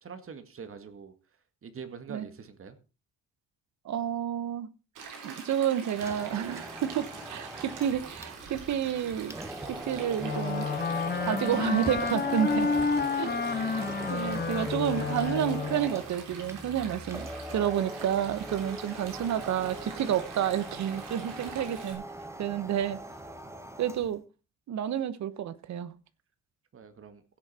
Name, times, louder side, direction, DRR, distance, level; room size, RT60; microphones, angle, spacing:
voice 1, 0.0-1.1 1.6-2.8 26.7-27.2, right 6 dB, 45° right, 2.0 m, -44 dB
voice 2, 3.8-4.7 5.2-9.3 9.7-10.7 11.2-12.7 13.1-22.0 22.4-23.0 23.8-24.2 24.7-25.9, right 9 dB, 65° right, 1.1 m, -30 dB
Stream, 4.9-21.9, right 5 dB, 85° right, 3.8 m, -45 dB
sound 1, 5.9-24.2, right 1 dB, 10° right, 1.7 m, -41 dB
Wind instrument woodwind instrument, 10.2-15.9, left 5 dB, 35° left, 1.2 m, -30 dB
16.0 x 6.9 x 4.3 m
cardioid pair, 90°, 30 cm